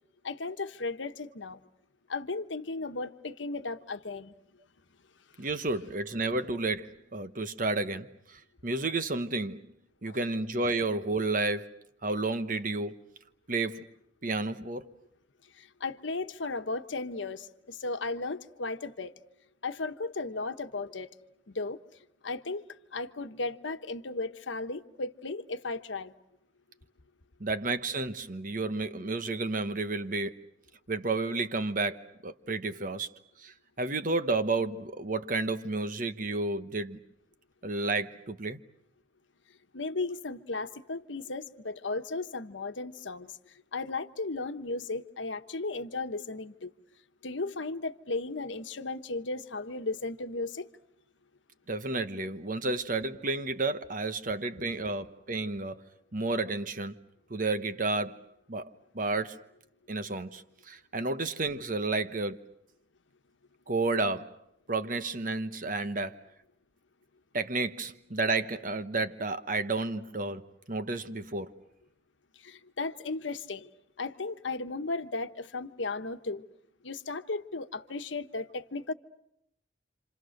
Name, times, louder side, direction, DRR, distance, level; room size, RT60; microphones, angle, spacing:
voice 1, 0.2-1.6 2.1-4.3 10.1-10.2 15.6-19.1 19.6-21.1 21.5-21.8 22.2-22.6 22.9-26.1 39.7-43.3 43.7-46.7 47.2-50.7 72.4-73.7 74.0-76.4 76.8-78.9, left 3 dB, 85° left, 1.2 m, -35 dB
voice 2, 5.4-9.6 10.0-13.0 13.5-13.9 14.2-14.9 27.4-30.4 30.9-33.1 33.4-37.0 37.6-38.6 51.7-55.8 56.1-57.0 57.3-58.2 58.5-59.4 59.9-62.4 63.7-64.3 64.7-66.2 67.3-71.5, right 3 dB, 45° right, 1.1 m, -31 dB
29.5 x 27.0 x 6.6 m
head